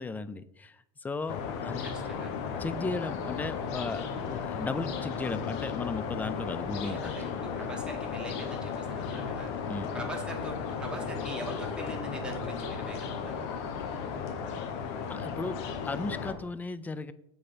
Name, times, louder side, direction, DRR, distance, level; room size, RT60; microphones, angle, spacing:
voice 1, 0.0-2.2 2.6-7.1 9.7-9.9 15.1-17.1, left 3 dB, 10° left, 14 dB, 0.4 m, -36 dB
sound 1, 1.3-16.3, left 6 dB, 65° left, 1.1 m, -35 dB
voice 2, 1.8-2.4 6.8-9.5 9.9-13.5, right 1 dB, 5° right, 0 dB, 1.7 m, -41 dB
6.9 x 4.2 x 5.1 m, 0.77 s
supercardioid pair, 115°, 16 cm